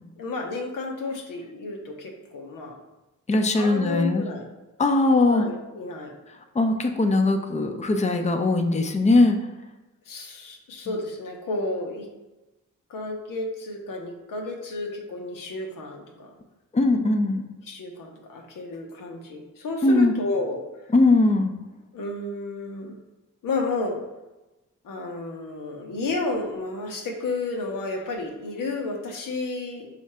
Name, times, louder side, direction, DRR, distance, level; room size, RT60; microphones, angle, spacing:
voice 1, 0.2-2.8 3.5-4.4 4.9-6.1 10.1-12.1 12.9-16.3 17.7-20.6 21.9-23.0 23.4-24.0 24.8-29.9, left 2 dB, 85° left, 2 dB, 0.8 m, -31 dB
voice 2, 3.3-4.2 4.8-5.5 6.5-9.4 16.7-17.4 19.8-20.1 20.9-21.5, left 2 dB, 20° left, 5 dB, 0.5 m, -20 dB
4.3 x 2.5 x 4.2 m, 1.1 s
cardioid pair, 50°, 32 cm